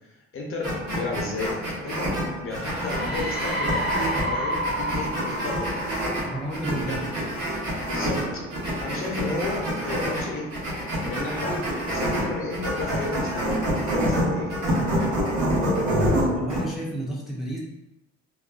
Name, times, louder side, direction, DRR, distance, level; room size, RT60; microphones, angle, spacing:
voice 1, 0.0-5.9 6.9-7.0 7.9-8.4 8.8-10.5 11.0-14.5 14.9-15.2 15.7-15.8, left 3 dB, 45° left, 0 dB, 0.6 m, -33 dB
sound 1, 0.6-16.6, equal, 85° right, 1.0 m, -27 dB
sound 2, 2.6-7.1, equal, 35° right, 1.1 m, -30 dB
voice 2, 6.2-7.0 16.3-17.6, right 1 dB, ahead, -4 dB, 0.5 m, -31 dB
2.4 x 2.2 x 2.3 m, 0.87 s
cardioid pair, 90°, 30 cm